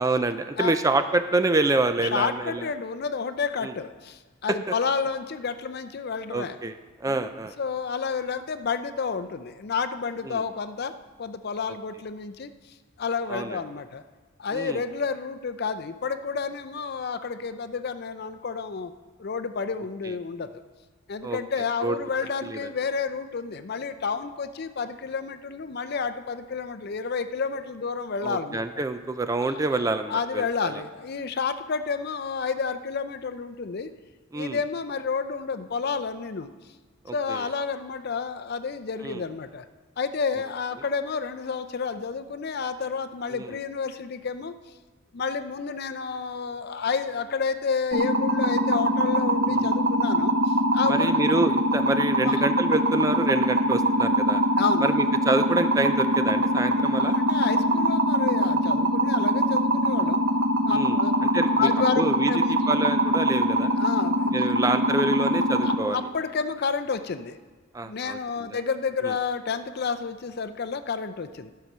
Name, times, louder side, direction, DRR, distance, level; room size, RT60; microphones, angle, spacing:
voice 1, 0.0-2.7 3.6-3.7 4.5-4.7 6.3-7.5 10.2-10.4 13.3-13.6 14.5-14.8 20.0-20.1 21.2-21.4 21.8-22.0 22.4-22.7 28.2-30.8 34.3-34.6 37.0-37.5 39.0-39.2 43.3-43.6 49.5-49.7 50.9-54.4 54.8-57.2 60.7-63.7 64.3-66.0 67.7-68.6 69.0-69.1, right 2 dB, 15° right, 9 dB, 0.4 m, -27 dB
voice 2, 2.1-6.6 7.1-7.3 7.6-10.9 11.2-12.5 13.0-14.0 14.4-18.9 19.2-20.5 21.1-28.7 29.5-29.8 30.1-33.9 34.3-36.5 37.1-39.6 40.0-44.5 45.1-51.3 52.2-52.4 54.6-54.9 57.0-60.2 60.6-61.1 61.6-62.8 63.8-64.6 65.6-67.4 67.8-71.5, left 5 dB, 50° left, 10 dB, 0.5 m, -30 dB
sound 1, 47.9-65.7, equal, 55° right, 0.9 m, -23 dB
12.0 x 5.7 x 6.1 m, 1.4 s
head